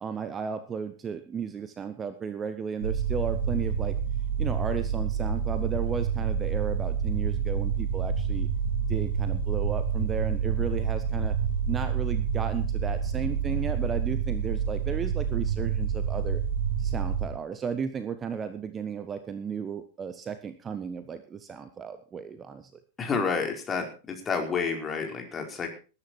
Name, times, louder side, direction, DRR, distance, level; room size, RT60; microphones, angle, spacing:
voice 1, 0.0-4.0 4.4-8.5 8.9-11.4 11.7-16.4 16.8-22.8, right 6 dB, 20° right, 11 dB, 1.3 m, -34 dB
sound 1, 2.8-17.3, right 6 dB, 65° right, 4.2 m, -28 dB
voice 2, 23.0-23.9 24.2-25.7, left 5 dB, 20° left, 3 dB, 4.6 m, -29 dB
20.0 x 10.5 x 4.6 m, 0.35 s
figure-of-eight pair, 90°, 0 cm